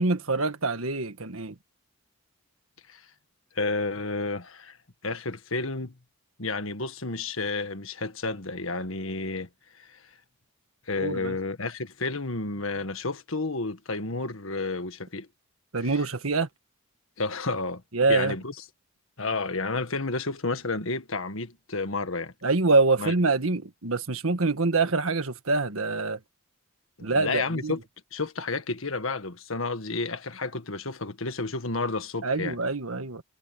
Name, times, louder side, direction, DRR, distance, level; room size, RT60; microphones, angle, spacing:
voice 1, 0.0-1.5 11.0-11.4 15.7-16.5 17.9-18.3 22.4-26.2 27.0-27.7 32.2-33.2, right 3 dB, 80° right, 1.7 m, -25 dB
voice 2, 3.5-4.8 5.0-5.9 6.4-9.5 9.8-10.1 10.9-15.3 15.8-16.0 17.2-17.8 18.1-18.5 19.2-22.3 23.0-23.1 27.0-27.8 28.1-32.6, left 3 dB, 70° left, 1.7 m, -31 dB
head